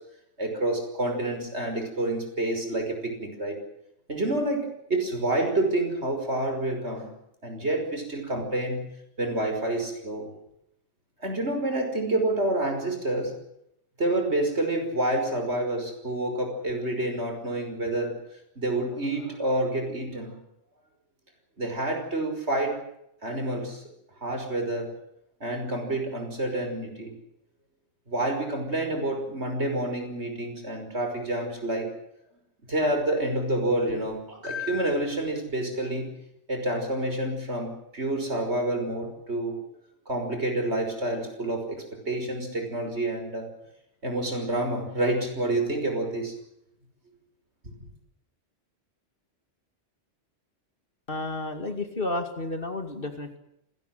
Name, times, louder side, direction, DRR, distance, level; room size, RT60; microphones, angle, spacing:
voice 1, 0.4-3.6 4.1-7.1 7.4-8.8 9.2-10.3 11.2-13.3 14.0-18.2 18.6-20.3 21.6-22.8 23.2-23.8 24.2-24.9 25.4-27.2 28.1-31.9 32.7-36.1 36.5-39.6 40.1-43.5 44.0-46.3, right 1 dB, 60° right, 4 dB, 6.0 m, -28 dB
voice 2, 51.1-53.4, left 2 dB, 45° left, 7 dB, 2.7 m, -31 dB
26.5 x 18.5 x 7.9 m, 0.79 s
omnidirectional pair, 1.3 m